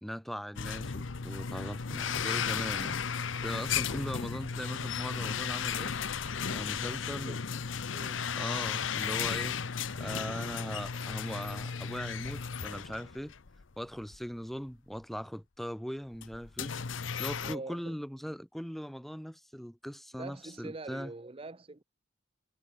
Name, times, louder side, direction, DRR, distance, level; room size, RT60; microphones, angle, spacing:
voice 1, 0.0-5.9 6.5-7.4 8.3-9.6 9.9-13.3 13.8-16.7 17.2-21.1, equal, ahead, 1.2 m, -40 dB
sound 1, 0.6-13.6 14.0-14.2 15.0-15.1 16.1-17.6, left 6 dB, 80° left, 0.8 m, -35 dB
voice 2, 6.8-7.4 7.9-8.3 17.4-18.0 20.1-21.8, right 2 dB, 30° right, 0.8 m, -44 dB
head